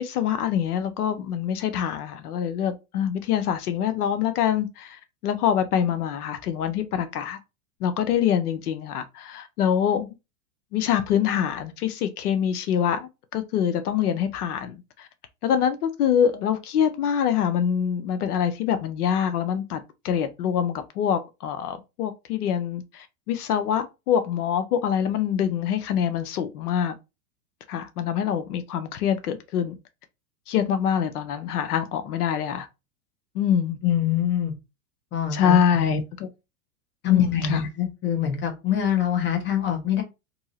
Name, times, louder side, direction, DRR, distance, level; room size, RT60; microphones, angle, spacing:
voice 1, 0.0-7.4 7.8-10.2 10.7-15.1 15.4-26.9 27.7-29.7 30.5-32.7 33.3-33.8 35.3-36.3 37.1-37.6, left 8 dB, 85° left, 0.7 m, -25 dB
voice 2, 33.8-34.5 35.1-36.0 37.0-40.0, left 9 dB, 25° left, 1.0 m, -24 dB
2.7 x 2.7 x 2.7 m
hypercardioid pair, 115°, 44 cm